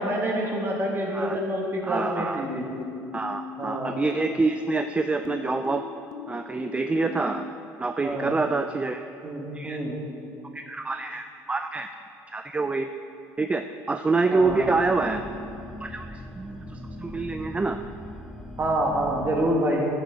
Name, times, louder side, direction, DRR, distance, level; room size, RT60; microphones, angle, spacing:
voice 1, 0.0-2.6 3.6-4.0 8.0-8.3 9.2-9.9 14.3-14.7 18.6-19.9, right 1 dB, 30° right, -1 dB, 1.7 m, -27 dB
voice 2, 1.8-2.5 3.1-5.8 6.3-7.5 7.8-9.0 9.5-9.8 10.5-11.9 12.3-12.9 13.4-15.2 15.8-17.8, right 3 dB, 15° right, 7 dB, 0.3 m, -27 dB
sound 1, 2.4-7.5, left 6 dB, 55° left, 0.6 m, -40 dB
sound 2, 14.4-19.5, left 1 dB, 5° left, 0.8 m, -40 dB
10.5 x 6.5 x 3.6 m, 2.7 s
supercardioid pair, 85°, 7 cm